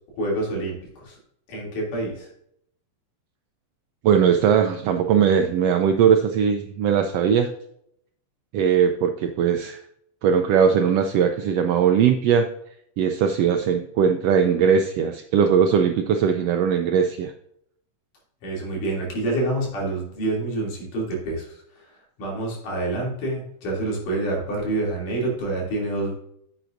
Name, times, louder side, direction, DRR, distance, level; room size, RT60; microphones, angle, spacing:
voice 1, 0.2-1.2 1.5-2.3 18.4-21.6 22.2-26.1, right 2 dB, 90° left, -3 dB, 4.4 m, -27 dB
voice 2, 4.0-7.5 8.5-9.8 10.2-12.5 13.0-17.3, right 7 dB, 85° right, 6 dB, 1.4 m, -20 dB
10.0 x 8.0 x 2.6 m, 0.71 s
omnidirectional pair, 3.5 m